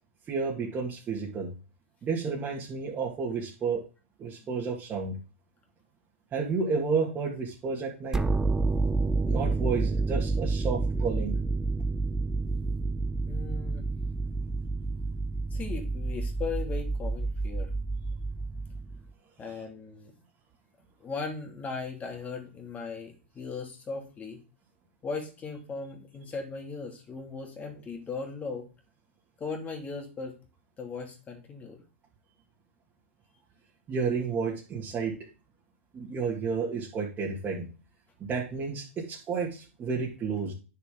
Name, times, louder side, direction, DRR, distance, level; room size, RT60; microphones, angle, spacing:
voice 1, 0.3-1.5 2.0-3.8 4.2-5.1 6.3-8.2 9.3-11.3 33.9-35.2 35.9-37.7 38.3-40.5, right 5 dB, 25° right, -4 dB, 2.5 m, -31 dB
sound 1, 8.1-19.1, right 3 dB, 10° right, 0.7 m, -29 dB
voice 2, 13.2-13.9 15.5-17.7 19.4-20.1 21.0-24.4 25.0-28.7 29.4-30.3 30.8-31.8, left 4 dB, 20° left, 3 dB, 2.7 m, -38 dB
9.6 x 6.8 x 3.9 m, 0.34 s
hypercardioid pair, 115°, 7 cm